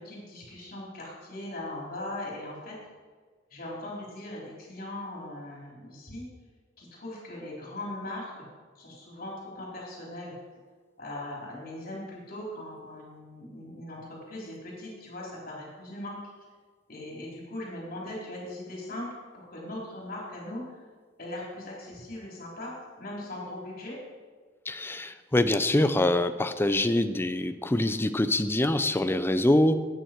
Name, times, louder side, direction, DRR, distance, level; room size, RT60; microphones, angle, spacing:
voice 1, 0.0-2.7 3.5-6.3 6.8-8.4 8.8-10.3 11.0-16.2 16.9-20.9 21.2-24.0, left 1 dB, 50° left, -4 dB, 3.9 m, -39 dB
voice 2, 24.7-29.8, left 1 dB, 10° left, 10 dB, 0.5 m, -24 dB
13.0 x 9.2 x 4.6 m, 1.5 s
head